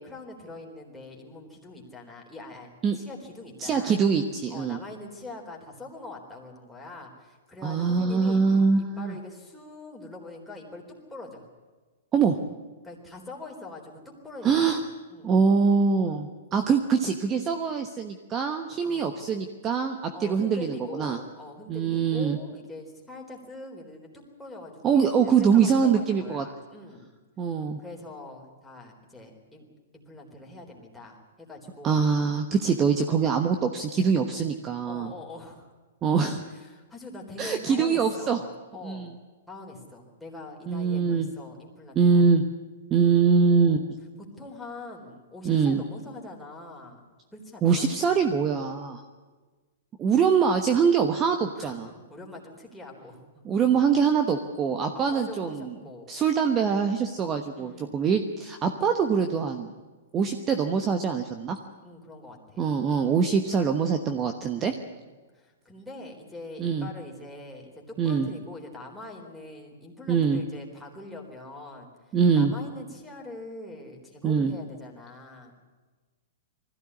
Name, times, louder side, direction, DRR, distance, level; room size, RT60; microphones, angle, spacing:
voice 1, 0.0-4.0 4.5-8.4 8.8-11.5 12.8-13.9 14.2-14.8 15.1-15.3 18.8-19.1 20.1-27.1 27.8-29.7 29.9-32.0 34.9-35.7 36.5-39.1 39.5-42.4 43.6-43.8 44.4-47.1 47.3-47.9 51.6-53.6 54.6-56.2 57.6-58.0 61.8-62.7 64.9-65.1 65.3-71.9 72.3-75.5, left 2 dB, 5° left, -2 dB, 3.9 m, -43 dB
voice 2, 3.6-4.8 7.6-9.2 12.1-12.4 14.4-14.8 15.2-21.2 21.7-22.4 24.8-26.4 27.4-27.8 31.8-35.1 36.0-36.5 37.4-38.4 38.8-39.1 40.7-41.3 41.9-42.4 42.9-43.8 45.4-45.8 47.6-49.0 50.0-51.9 53.4-55.7 56.1-59.7 60.1-61.6 62.6-64.7 66.6-66.9 68.0-68.3 70.1-70.4 72.1-72.5 74.2-74.5, right 6 dB, 20° right, 6 dB, 1.2 m, -23 dB
20.5 x 15.5 x 9.8 m, 1.3 s
hypercardioid pair, 145°, 0 cm